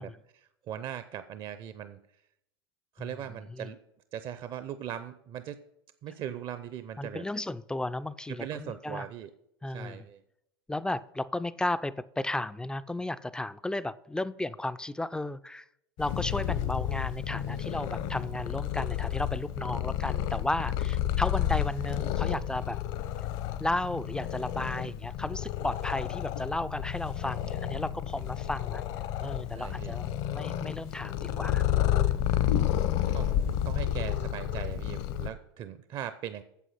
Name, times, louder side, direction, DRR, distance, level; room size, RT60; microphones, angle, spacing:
voice 1, 0.0-2.0 3.0-3.8 4.1-5.6 6.0-7.2 8.3-9.3 9.7-10.2 29.5-30.0 32.3-32.4 33.1-36.4, right 10 dB, 40° right, 0.6 m, -40 dB
voice 2, 7.0-9.1 9.6-10.0 10.7-15.6 16.0-22.8 23.6-28.8 29.2-31.6 32.7-32.9, left 1 dB, 5° left, 0.3 m, -34 dB
Purr, 16.0-35.3, left 11 dB, 55° left, 0.8 m, -31 dB
8.3 x 7.5 x 5.6 m
hypercardioid pair, 90°, 13 cm